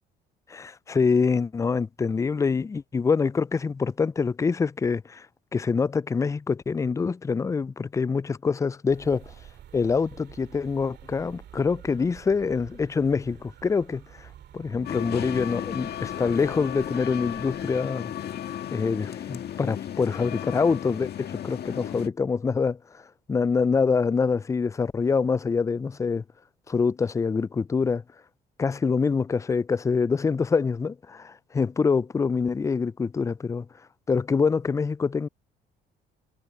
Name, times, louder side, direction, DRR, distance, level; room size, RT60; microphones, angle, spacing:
voice 1, 0.5-5.3 5.5-9.3 9.7-14.3 14.5-18.1 18.7-23.0 23.3-26.2 26.7-28.0 28.6-33.7 34.1-35.3, left 5 dB, 15° left, 0.3 m, -25 dB
sound 1, 8.9-17.8, right 10 dB, 60° right, 2.6 m, -49 dB
sound 2, 14.8-22.1, left 10 dB, 55° left, 1.8 m, -34 dB
supercardioid pair, 70°, 20 cm